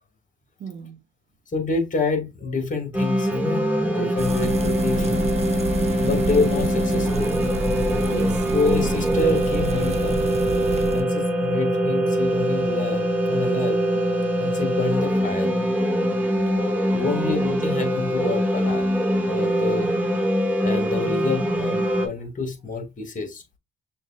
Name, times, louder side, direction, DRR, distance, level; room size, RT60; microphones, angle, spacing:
voice 1, 0.6-1.0 7.7-8.5 14.2-14.3 17.1-17.3, right 6 dB, 65° right, 0.9 m, -36 dB
voice 2, 1.5-5.3 6.0-7.3 8.5-10.3 10.9-13.8 14.4-15.5 16.9-18.9 19.2-19.9 20.6-23.4, left 3 dB, 40° left, 1.9 m, -27 dB
sound 1, 2.9-22.1, equal, 5° right, 1.2 m, -23 dB
sound 2, 4.2-11.0, right 4 dB, 30° right, 0.6 m, -29 dB
6.5 x 2.7 x 2.4 m
cardioid pair, 90°, 20 cm